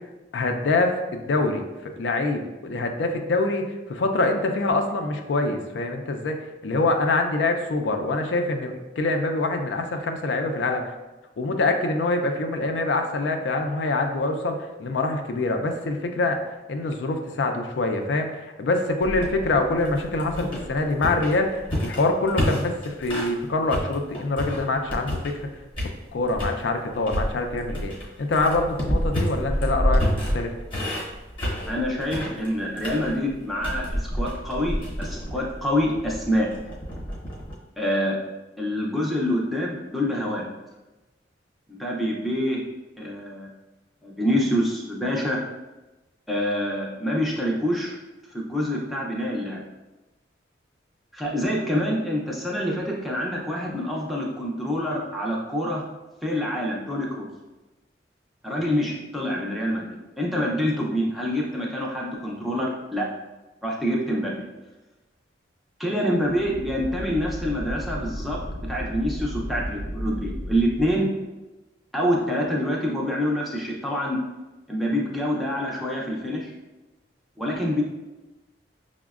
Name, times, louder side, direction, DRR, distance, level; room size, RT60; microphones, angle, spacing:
voice 1, 0.3-6.4 6.6-10.8 11.4-16.4 16.7-25.5 26.1-27.9 28.2-30.0 30.3-30.5, left 2 dB, 70° left, 5 dB, 0.4 m, -25 dB
sound 1, 19.0-23.4 23.7-25.5 25.7-26.6 27.1-37.5, equal, 25° left, 0.8 m, -29 dB
voice 2, 31.7-36.5 37.8-38.2 38.6-40.5 41.7-42.6 43.0-43.5 44.0-45.4 46.3-48.0 48.3-49.6 51.1-55.8 56.2-57.3 58.4-63.1 63.6-64.5 65.8-71.1 71.9-74.2 74.7-76.5 77.4-77.8, equal, ahead, -4 dB, 0.4 m, -26 dB
sound 2, 66.1-71.0, equal, 65° right, 0.6 m, -34 dB
5.9 x 2.1 x 2.3 m, 1.1 s
head